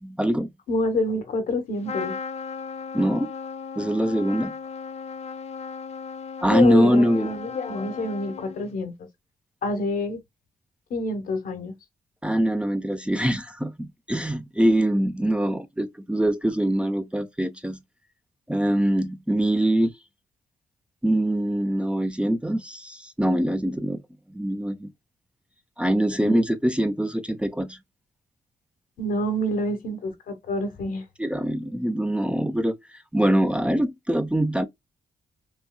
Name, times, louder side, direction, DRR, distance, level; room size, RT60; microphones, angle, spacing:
voice 1, 0.0-0.5 2.9-3.3 3.8-4.5 6.4-7.3 12.2-17.8 18.5-19.9 21.0-24.0 24.3-24.9 25.8-27.8 31.2-32.7 33.1-34.7, right 1 dB, 5° right, 0.7 m, -23 dB
voice 2, 0.7-2.2 6.5-8.9 9.6-10.2 10.9-11.7 26.2-26.4 29.0-31.0, left 1 dB, 65° left, 1.2 m, -27 dB
Trumpet, 1.8-8.8, left 5 dB, 45° left, 0.5 m, -36 dB
5.5 x 2.3 x 2.2 m
hypercardioid pair, 45°, 16 cm